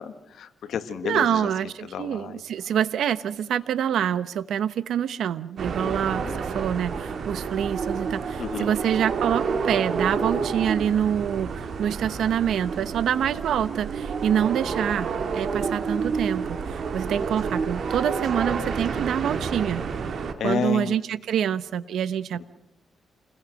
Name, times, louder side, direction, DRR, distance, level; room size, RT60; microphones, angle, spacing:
voice 1, 0.0-1.5 1.8-2.4 5.8-6.4 8.4-8.7 17.2-17.3 20.4-20.9 22.3-22.4, left 7 dB, 75° left, 10 dB, 1.6 m, -31 dB
voice 2, 1.0-19.8 20.4-22.4, right 9 dB, 80° right, 15 dB, 0.9 m, -26 dB
sound 1, 5.6-20.3, right 5 dB, 60° right, 2.3 m, -29 dB
28.5 x 21.5 x 6.5 m, 0.84 s
cardioid pair, 100°, 0 cm